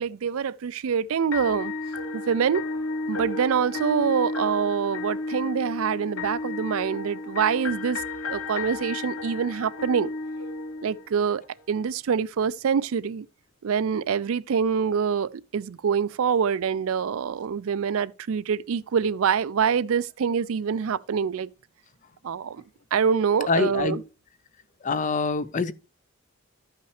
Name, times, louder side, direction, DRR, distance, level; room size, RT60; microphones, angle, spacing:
voice 1, 0.0-1.7 2.1-2.6 3.1-8.0 8.3-10.1 10.8-11.4 11.7-13.3 13.6-21.5 22.2-22.6 22.9-24.0, right 7 dB, 70° right, 0.4 m, -25 dB
sound 1, 1.3-11.4, left 3 dB, 70° left, 0.9 m, -33 dB
voice 2, 23.5-24.0 24.8-25.7, left 4 dB, 35° left, 0.5 m, -25 dB
13.0 x 5.6 x 3.2 m
head